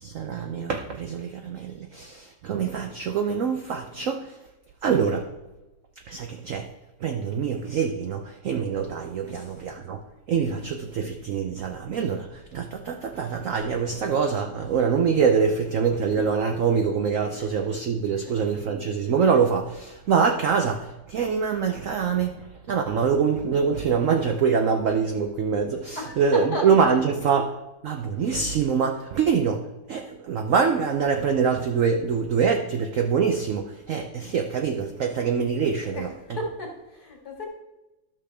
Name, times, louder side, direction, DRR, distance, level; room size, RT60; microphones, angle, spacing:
voice 1, 0.0-4.3 4.8-5.3 6.1-6.7 7.0-10.0 10.3-22.4 22.7-27.5 27.8-36.1, right 6 dB, 65° right, 4 dB, 0.8 m, -24 dB
voice 2, 26.0-26.9 35.8-36.1 36.4-37.5, left 1 dB, 55° left, -1 dB, 2.6 m, -34 dB
12.5 x 6.6 x 3.4 m, 1.0 s
omnidirectional pair, 2.0 m